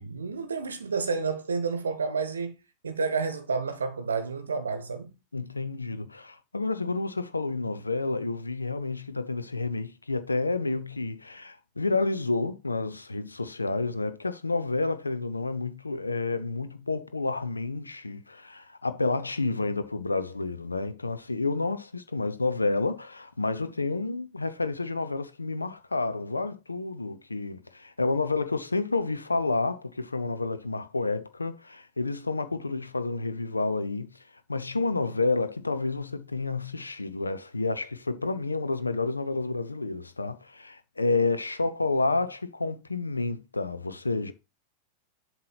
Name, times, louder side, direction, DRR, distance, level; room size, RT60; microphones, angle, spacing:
voice 1, 0.0-2.6 2.8-5.1, right 4 dB, 70° right, 0.9 m, -30 dB
voice 2, 5.3-34.1 34.5-44.3, left 3 dB, 80° left, 0.5 m, -30 dB
7.4 x 3.0 x 5.7 m
figure-of-eight pair, 90°, 0 cm